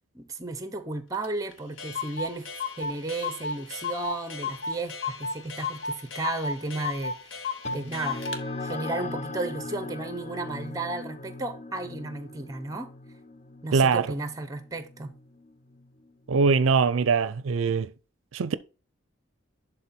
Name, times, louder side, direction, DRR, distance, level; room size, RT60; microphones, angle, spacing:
voice 1, 0.1-2.5 2.8-8.3 8.6-12.9 13.6-15.1, right 2 dB, 15° right, 0.9 m, -34 dB
Clock, 1.2-1.3 1.5-1.6 1.8-8.4, left 4 dB, 65° left, 1.1 m, -34 dB
sound 1, 7.6-16.5, left 2 dB, 35° left, 0.4 m, -40 dB
voice 2, 13.7-14.1 16.3-17.9 18.3-18.6, right 5 dB, 75° right, 0.5 m, -22 dB
11.0 x 3.8 x 4.3 m
head